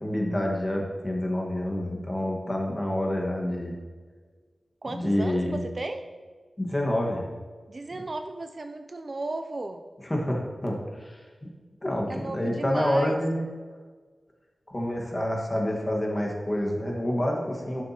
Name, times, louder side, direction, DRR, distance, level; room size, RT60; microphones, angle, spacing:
voice 1, 0.0-3.8 4.9-5.6 6.6-7.2 10.0-11.2 11.8-13.5 14.7-17.8, left 1 dB, 20° left, -1 dB, 1.5 m, -28 dB
voice 2, 4.8-6.0 7.7-9.8 12.1-13.2, right 2 dB, 40° right, 7 dB, 0.4 m, -35 dB
11.5 x 7.1 x 2.8 m, 1.5 s
wide cardioid pair, 115°, 0 cm